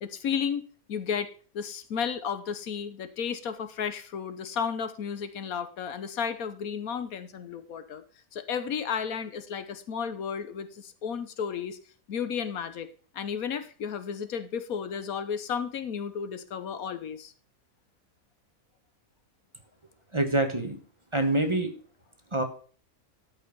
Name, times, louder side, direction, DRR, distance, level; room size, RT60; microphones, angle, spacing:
voice 1, 0.0-8.0 8.3-11.8 12.1-12.9 13.1-17.3, left 7 dB, 80° left, 11 dB, 1.4 m, -33 dB
voice 2, 20.1-20.8 21.1-21.7 22.3-22.4, right 2 dB, 20° right, 5 dB, 1.3 m, -25 dB
12.5 x 5.7 x 5.3 m, 0.41 s
omnidirectional pair, 1.5 m